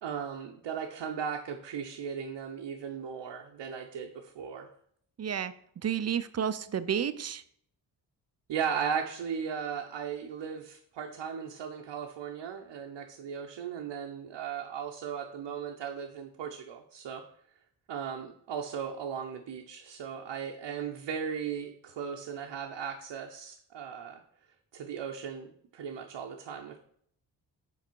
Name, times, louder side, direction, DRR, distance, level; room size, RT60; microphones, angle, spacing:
voice 1, 0.0-4.7 8.5-17.2 17.9-24.2 24.7-26.8, right 7 dB, 75° right, 2 dB, 0.7 m, -37 dB
voice 2, 5.2-5.5 5.8-7.4, right 8 dB, 35° right, 14 dB, 0.5 m, -31 dB
5.8 x 3.9 x 4.5 m, 0.65 s
cardioid pair, 55°, 44 cm